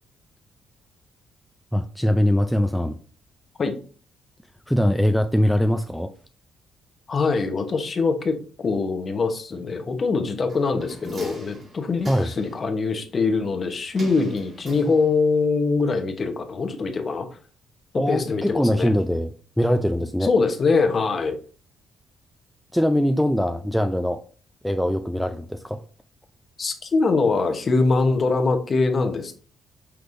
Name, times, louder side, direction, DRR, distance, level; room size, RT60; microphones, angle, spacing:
voice 1, 1.7-3.0 4.7-6.1 12.1-12.3 17.9-19.3 19.6-20.3 22.7-24.2 24.6-25.8, equal, ahead, 0.3 m, -22 dB
voice 2, 7.1-17.4 17.9-18.9 20.2-21.3 26.6-29.3, left 4 dB, 40° left, 0.9 m, -23 dB
sound 1, 10.5-12.6 14.0-15.4 15.7-15.8, right 1 dB, 45° right, 1.7 m, -41 dB
5.9 x 3.3 x 2.6 m
cardioid pair, 90°, 0 cm